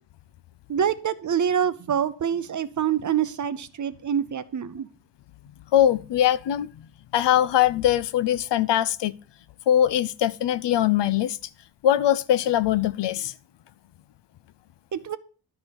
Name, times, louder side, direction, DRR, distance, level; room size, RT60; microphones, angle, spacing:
voice 1, 0.7-4.9 14.9-15.2, right 8 dB, 40° right, 0.6 m, -26 dB
voice 2, 5.7-6.7 7.1-9.1 9.7-11.4 11.8-13.3, left 11 dB, 70° left, 0.5 m, -21 dB
11.5 x 4.6 x 5.2 m
wide cardioid pair, 130°, 44 cm